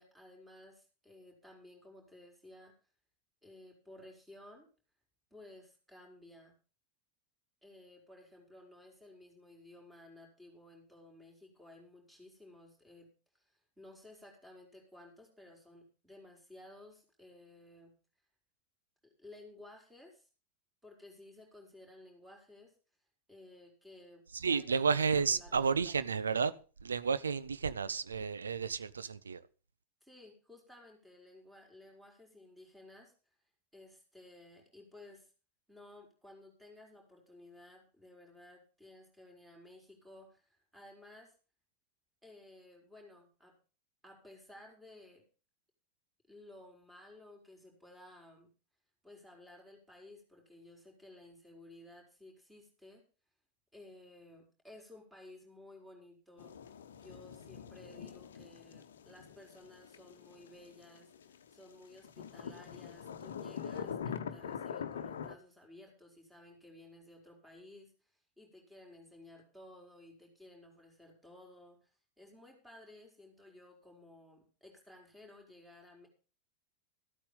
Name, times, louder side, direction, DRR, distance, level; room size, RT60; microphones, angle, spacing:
voice 1, 0.0-2.8 3.4-4.7 5.3-6.5 7.6-13.1 13.3-18.0 19.0-20.3 20.8-22.7 23.3-26.1 30.0-33.1 33.7-35.3 35.7-41.3 42.2-43.6 44.0-45.2 46.3-48.5 49.0-53.0 53.7-67.9 68.4-71.9 72.2-76.1, left 1 dB, 5° right, 4.5 m, -56 dB
voice 2, 24.4-26.5 26.8-29.4, right 5 dB, 70° right, 0.7 m, -31 dB
sound 1, 56.4-61.6 61.9-65.3, left 7 dB, 65° left, 1.0 m, -44 dB
14.5 x 8.7 x 5.3 m
figure-of-eight pair, 90°, 0 cm